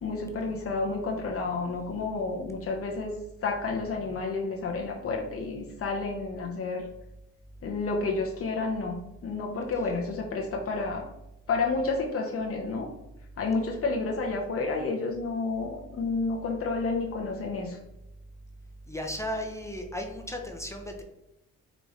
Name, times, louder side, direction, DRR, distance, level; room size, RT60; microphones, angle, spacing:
voice 1, 0.0-3.2 3.4-6.9 7.6-9.0 9.2-11.1 11.5-12.9 13.4-17.8, left 3 dB, 50° left, 0 dB, 0.7 m, -30 dB
voice 2, 18.9-21.0, equal, 10° left, 2 dB, 0.6 m, -35 dB
5.0 x 2.5 x 3.1 m, 0.91 s
cardioid pair, 90°, 30 cm